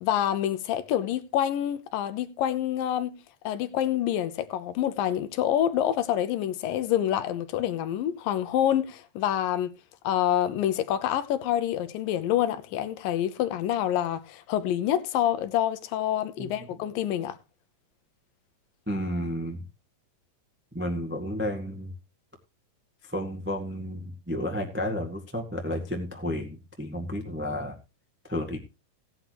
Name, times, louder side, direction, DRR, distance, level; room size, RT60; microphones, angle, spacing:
voice 1, 0.0-3.2 3.4-9.7 10.0-17.4, left 11 dB, 80° left, 2.6 m, -27 dB
voice 2, 16.4-16.8 18.9-19.6 20.7-21.9 23.0-27.8 28.3-28.6, left 1 dB, 20° right, 0.3 m, -32 dB
16.5 x 9.6 x 3.0 m
omnidirectional pair, 4.0 m